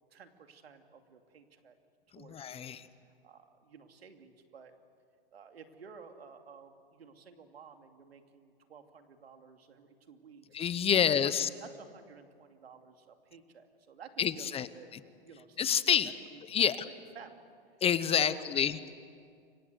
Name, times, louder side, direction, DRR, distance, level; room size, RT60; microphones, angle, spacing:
voice 1, 0.1-1.8 2.1-2.8 3.0-4.7 5.3-10.5 11.1-14.9 15.2-16.7 17.1-17.4 18.1-18.6, right 6 dB, 85° right, 6 dB, 2.7 m, -53 dB
voice 2, 2.1-2.9 10.5-11.5 14.2-14.7 14.9-15.0 15.6-16.1 16.5-16.8 17.8-18.9, left 8 dB, 20° left, 15 dB, 0.8 m, -28 dB
29.5 x 25.0 x 8.1 m, 2.2 s
hypercardioid pair, 120°, 30 cm